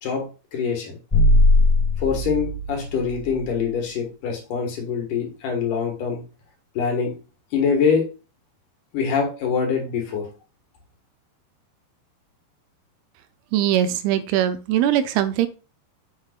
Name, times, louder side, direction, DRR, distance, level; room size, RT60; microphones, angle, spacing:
voice 1, 0.5-1.0 2.0-6.2 6.8-7.1 7.5-8.0 8.9-10.3, left 6 dB, 65° left, 2 dB, 2.8 m, -24 dB
sound 1, 1.1-3.5, left 1 dB, 30° left, 0.5 m, -19 dB
voice 2, 13.5-15.5, right 11 dB, 80° right, 12 dB, 2.5 m, -21 dB
7.3 x 6.6 x 2.4 m, 0.33 s
omnidirectional pair, 4.5 m